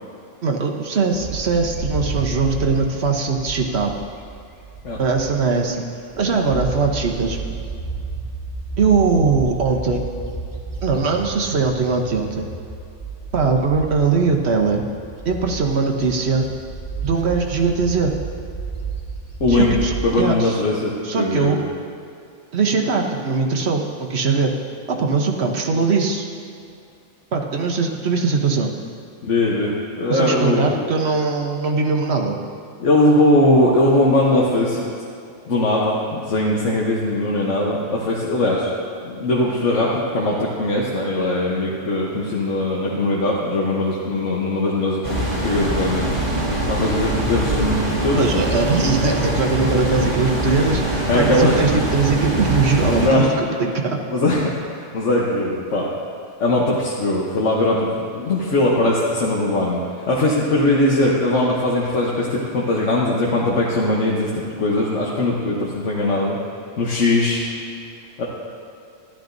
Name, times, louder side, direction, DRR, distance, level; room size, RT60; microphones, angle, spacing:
voice 1, 0.4-3.9 5.0-5.8 6.2-7.4 8.8-10.0 10.8-12.4 13.3-14.8 15.2-16.5 17.0-18.1 19.5-20.6 21.0-21.6 22.5-24.5 24.9-26.3 27.3-28.7 30.1-32.4 48.2-54.0, right 4 dB, 60° right, 2 dB, 1.2 m, -20 dB
Bird, 1.1-5.6 6.0-20.2, right 4 dB, 15° right, 1.2 m, -32 dB
voice 2, 19.4-19.7 20.0-20.9 21.2-21.6 29.2-29.7 30.0-30.9 32.8-34.9 35.5-38.7 39.0-46.1 46.7-48.4 49.9-50.0 50.6-50.7 51.1-51.6 53.0-53.3 54.1-55.9 56.4-66.4 66.8-67.4 68.2-68.3, left 1 dB, 75° left, -4 dB, 1.4 m, -20 dB
sound 1, 45.0-53.1, right 1 dB, 35° right, 3.1 m, -23 dB
14.0 x 12.0 x 2.6 m, 2.5 s
omnidirectional pair, 1.3 m